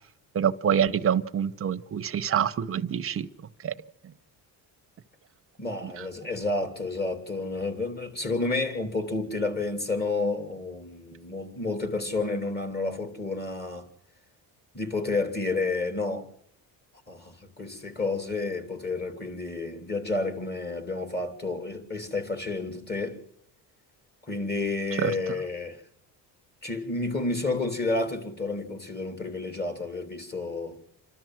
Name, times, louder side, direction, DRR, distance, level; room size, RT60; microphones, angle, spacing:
voice 1, 0.3-3.3 3.6-3.7 5.8-6.1 25.0-25.1, right 8 dB, 35° right, 1.0 m, -26 dB
voice 2, 5.6-13.8 14.7-16.3 17.1-23.2 24.2-25.8 26.6-30.8, left 3 dB, 25° left, 3.1 m, -30 dB
28.5 x 12.5 x 7.7 m
cardioid pair, 120°, 40 cm